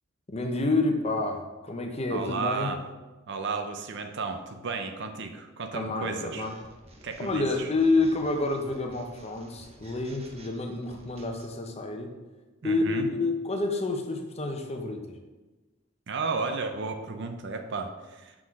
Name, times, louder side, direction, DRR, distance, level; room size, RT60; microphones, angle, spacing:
voice 1, 0.3-2.7 5.7-6.5 7.2-12.1 12.6-15.0, left 2 dB, 30° left, 4 dB, 0.8 m, -28 dB
voice 2, 2.1-2.8 3.3-6.5 7.0-7.7 12.6-13.1 16.1-18.3, right 4 dB, 60° right, 6 dB, 0.7 m, -33 dB
sound 1, 6.4-11.5, right 1 dB, 30° right, 1.1 m, -52 dB
6.1 x 6.0 x 4.8 m, 1.2 s
head